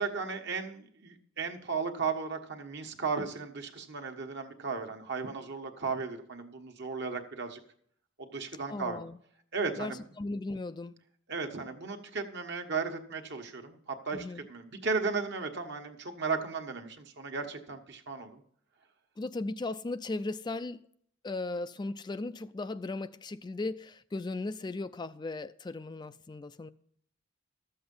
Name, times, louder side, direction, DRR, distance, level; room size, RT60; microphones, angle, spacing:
voice 1, 0.0-7.6 8.2-9.0 9.5-10.0 11.3-13.8 14.0-18.4, right 4 dB, 55° right, 1.4 m, -35 dB
voice 2, 8.7-9.2 9.8-11.0 14.1-14.5 19.2-20.8 21.2-26.7, left 2 dB, 20° left, 0.3 m, -37 dB
13.0 x 7.8 x 5.4 m
head